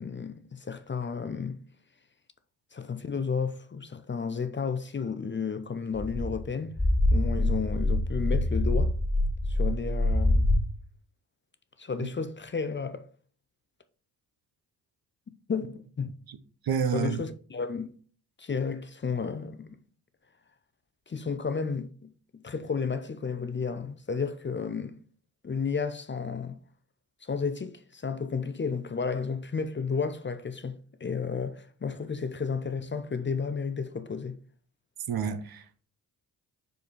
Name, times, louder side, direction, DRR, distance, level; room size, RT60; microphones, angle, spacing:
voice 1, 0.0-1.6 2.7-6.8 7.1-8.9 9.5-10.5 11.8-13.1 15.3-16.2 16.9-18.0 18.4-19.8 21.1-25.0 25.4-26.6 27.2-34.4, left 5 dB, 25° left, 0.7 m, -32 dB
sound 1, 5.9-10.6, left 1 dB, 5° left, 2.3 m, -25 dB
voice 2, 16.6-17.2 35.1-35.8, right 7 dB, 55° right, 0.9 m, -29 dB
5.3 x 4.7 x 4.7 m
hypercardioid pair, 45°, 44 cm